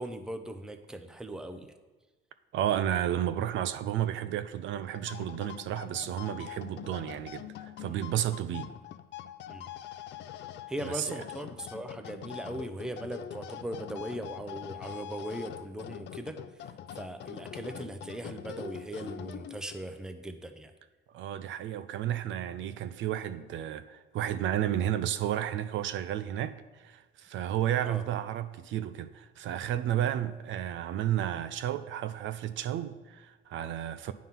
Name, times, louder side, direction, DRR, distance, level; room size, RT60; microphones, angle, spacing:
voice 1, 0.0-1.7 7.8-8.0 9.5-9.7 10.7-16.4 16.9-20.7 27.8-28.0, right 1 dB, 5° right, 0.5 m, -39 dB
voice 2, 2.5-8.7 10.8-11.2 21.1-34.1, right 11 dB, 65° right, 0.4 m, -32 dB
sound 1, 4.8-19.8, left 11 dB, 55° left, 0.4 m, -44 dB
9.3 x 3.7 x 5.7 m
cardioid pair, 125°, 21 cm